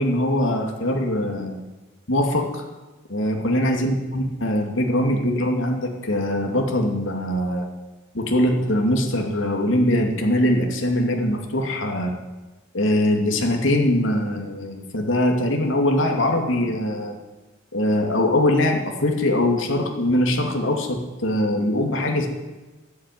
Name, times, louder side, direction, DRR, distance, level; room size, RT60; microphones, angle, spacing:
voice 1, 0.0-1.5 2.1-2.6 3.1-7.7 8.1-12.1 12.7-17.2 17.7-22.3, left 1 dB, 90° left, 2 dB, 2.5 m, -22 dB
13.0 x 12.0 x 9.3 m, 1.2 s
head